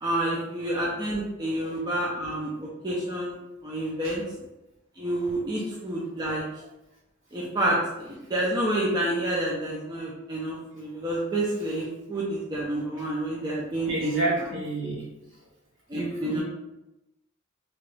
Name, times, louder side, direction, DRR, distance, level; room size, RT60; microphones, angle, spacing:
voice 1, 0.0-3.3 3.6-4.2 5.0-6.4 7.3-14.2 15.9-16.4, right 1 dB, 20° right, -5 dB, 0.5 m, -29 dB
voice 2, 13.8-15.0 15.9-16.4, right 2 dB, 65° right, -6 dB, 1.4 m, -30 dB
2.9 x 2.3 x 3.2 m, 0.93 s
head